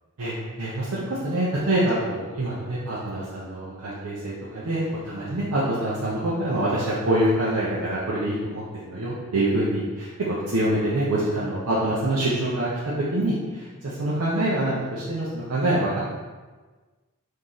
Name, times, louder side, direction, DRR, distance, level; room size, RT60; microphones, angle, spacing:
voice 1, 0.2-16.0, right 1 dB, 75° right, -8 dB, 0.6 m, -25 dB
3.0 x 2.7 x 3.8 m, 1.3 s
head